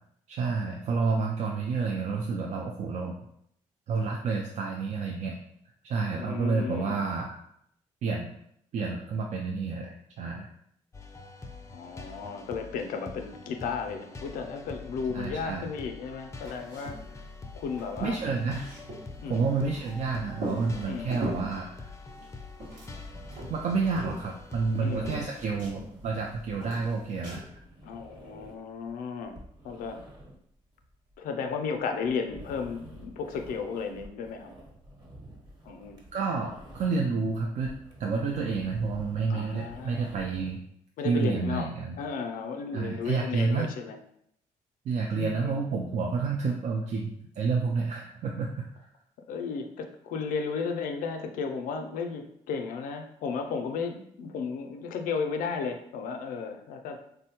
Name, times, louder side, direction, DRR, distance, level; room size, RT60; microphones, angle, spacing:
voice 1, 0.3-3.2 3.9-5.4 5.8-7.4 8.0-8.3 8.7-10.5 15.1-15.7 18.0-18.7 19.3-21.9 23.5-27.4 36.1-37.7 38.0-40.6 41.0-42.0 42.7-43.7 44.9-48.7, right 4 dB, 60° right, 0 dB, 0.4 m, -29 dB
voice 2, 6.2-7.0 11.7-17.2 17.5-18.2 19.2-19.4 20.9-21.2 24.8-25.2 27.8-29.4 29.6-30.0 31.2-34.5 35.6-36.0 39.3-40.1 41.0-44.0 45.2-45.6 49.3-57.0, left 5 dB, 85° left, 5 dB, 0.4 m, -34 dB
sound 1, 10.9-25.2, left 3 dB, 20° left, 0.4 m, -45 dB
sound 2, 16.4-17.1 17.4-17.5 17.7-20.0 20.4-21.5 22.1-23.1 23.3-24.8 25.0-26.3 26.6-27.4, right 1 dB, 90° right, 1.2 m, -39 dB
sound 3, 22.9-37.2 37.5-40.5, equal, 30° right, 1.0 m, -49 dB
3.5 x 2.1 x 2.8 m, 0.72 s
cardioid pair, 85°, 14 cm